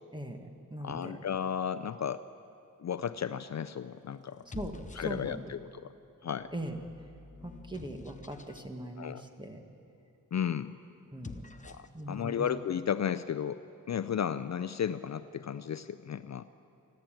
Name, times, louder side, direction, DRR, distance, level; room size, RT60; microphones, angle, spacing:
voice 1, 0.1-1.2 4.5-5.5 6.5-6.8 7.4-9.6 11.1-11.5 11.9-12.5, right 1 dB, 15° right, 4 dB, 1.5 m, -40 dB
voice 2, 0.8-2.2 2.8-4.4 5.0-5.9 6.2-6.5 9.0-9.2 10.3-10.7 11.6-16.4, left 8 dB, 50° left, 13 dB, 0.5 m, -34 dB
sound 1, 4.3-5.6 6.4-8.7 11.0-12.0, left 3 dB, 20° left, 0.7 m, -49 dB
28.5 x 12.0 x 9.0 m, 2.7 s
wide cardioid pair, 170°, 35 cm